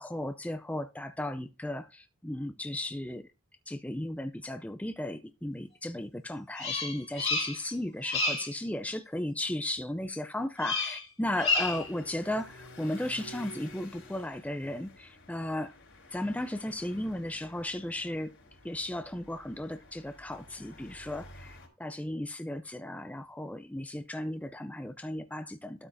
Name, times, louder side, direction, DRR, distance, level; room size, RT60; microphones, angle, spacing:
voice 1, 0.0-3.2 3.7-15.7 16.1-18.3 18.6-25.9, left 1 dB, 5° left, 0.4 m, -35 dB
Bird vocalization bird call bird song, 6.6-7.7 8.0-8.5 10.6-11.1 11.4-11.9, left 3 dB, 30° left, 2.3 m, -30 dB
sound 1, 11.3-21.7, left 1 dB, 60° left, 3.8 m, -52 dB
12.5 x 7.1 x 2.6 m
head